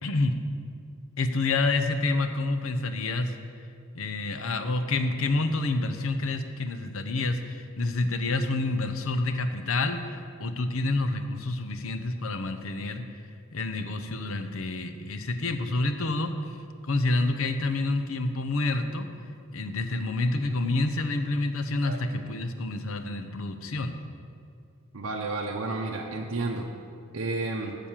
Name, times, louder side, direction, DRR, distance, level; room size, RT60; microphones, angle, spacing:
voice 1, 0.0-0.4 1.2-3.3 3.9-13.0 13.5-16.3 16.8-19.1 19.5-23.9, left 2 dB, 70° left, 9 dB, 0.8 m, -28 dB
voice 2, 24.9-26.7 27.1-27.8, right 3 dB, 80° right, -1 dB, 0.8 m, -31 dB
9.3 x 7.0 x 7.4 m, 2.3 s
head